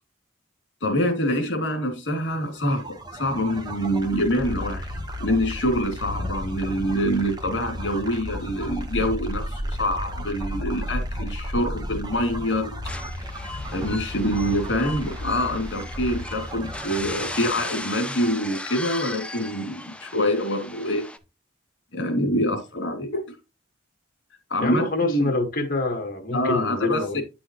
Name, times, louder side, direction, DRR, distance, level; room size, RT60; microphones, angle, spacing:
voice 1, 0.8-2.8 3.1-4.9 5.2-12.8 13.7-21.1 21.9-23.4 24.5-25.3 26.3-27.2, equal, 65° left, 2.6 m, -25 dB
sound 1, 2.5-18.2, equal, 20° right, 1.2 m, -33 dB
sound 2, 12.8-21.2, left 2 dB, 5° left, 0.5 m, -37 dB
voice 2, 24.6-27.2, left 2 dB, 50° left, 1.7 m, -26 dB
9.2 x 6.1 x 3.1 m
head